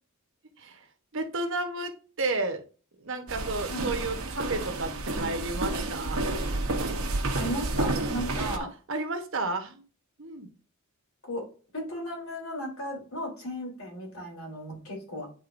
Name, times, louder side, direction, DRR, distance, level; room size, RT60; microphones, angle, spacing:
voice 1, 1.1-1.9 2.2-2.6 3.0-6.2 8.9-9.8 10.2-10.5, right 2 dB, 65° right, 5 dB, 1.1 m, -32 dB
sound 1, 3.3-8.6, right 2 dB, 85° right, 1.1 m, -30 dB
voice 2, 7.3-8.7 11.2-11.4 11.7-15.3, equal, 70° left, -2 dB, 3.4 m, -35 dB
9.6 x 4.0 x 2.6 m, 0.37 s
head